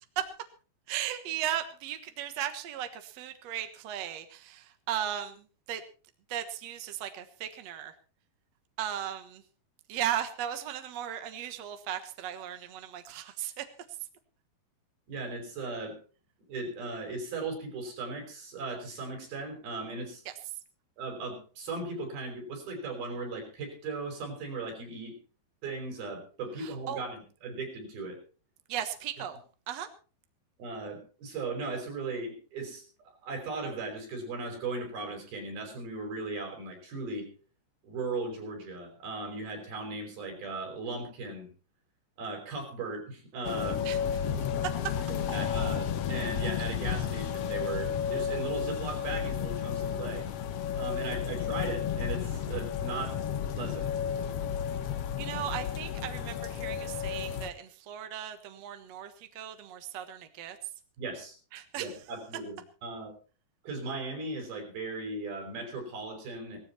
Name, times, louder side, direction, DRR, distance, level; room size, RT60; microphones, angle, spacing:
voice 1, 0.9-5.8 6.3-7.9 8.8-9.4 9.9-13.7 20.3-20.4 26.6-27.0 28.7-29.4 29.7-29.9 43.8-44.0 55.2-60.6 61.5-61.9, right 10 dB, 55° right, 8 dB, 2.1 m, -36 dB
voice 2, 15.1-16.0 16.5-20.2 21.0-25.2 25.6-28.2 30.6-37.3 37.8-41.5 42.2-43.8 45.1-50.3 50.7-53.2 53.6-53.9 61.0-61.4 61.8-63.1 63.6-66.6, right 3 dB, 75° right, 3 dB, 7.1 m, -37 dB
sound 1, 43.4-57.5, left 8 dB, 85° left, 1.3 m, -32 dB
18.0 x 14.5 x 4.3 m, 0.38 s
omnidirectional pair, 4.3 m